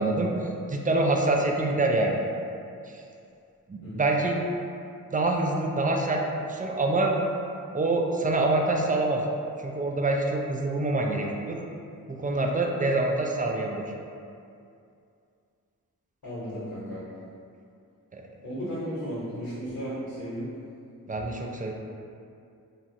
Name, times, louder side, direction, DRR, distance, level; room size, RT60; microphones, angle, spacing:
voice 1, 0.0-2.2 2.9-3.0 3.7-4.4 5.1-7.1 7.7-9.3 9.6-11.6 12.1-13.8 18.1-18.3 21.1-21.7, right 2 dB, 25° right, 1 dB, 0.3 m, -26 dB
voice 2, 16.2-17.0 18.4-20.4, equal, 75° left, -11 dB, 1.1 m, -34 dB
3.0 x 2.4 x 2.6 m, 2.5 s
cardioid pair, 45°, 37 cm